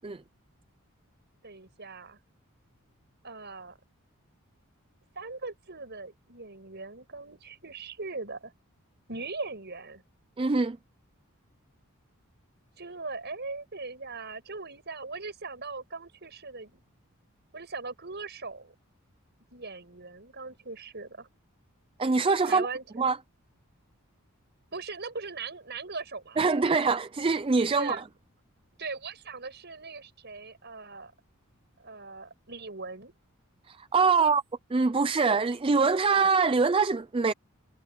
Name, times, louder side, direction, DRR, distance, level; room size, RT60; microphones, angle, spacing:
voice 1, 1.4-2.2 3.2-3.8 5.1-8.5 9.1-10.0 12.8-16.8 17.5-18.7 19.5-21.3 22.4-23.0 24.7-26.4 27.7-28.0 28.8-31.1 31.8-33.1, right 3 dB, 50° right, 6.9 m, -40 dB
voice 2, 10.4-10.8 22.0-22.7 23.0-23.2 26.4-28.0 33.7-34.4 34.7-37.3, right 4 dB, 25° right, 0.4 m, -24 dB
head